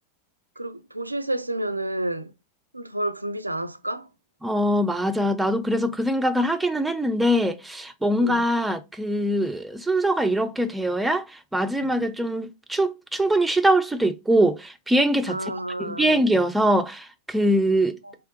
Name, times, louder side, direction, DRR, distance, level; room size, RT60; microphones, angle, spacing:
voice 1, 0.6-2.3 2.7-4.1 8.2-8.4 15.3-16.2 18.0-18.1, right 1 dB, 85° right, 0.3 m, -30 dB
voice 2, 4.4-15.5 15.8-18.0, right 1 dB, 5° right, 0.5 m, -23 dB
3.3 x 3.0 x 2.9 m
figure-of-eight pair, 90°, 0 cm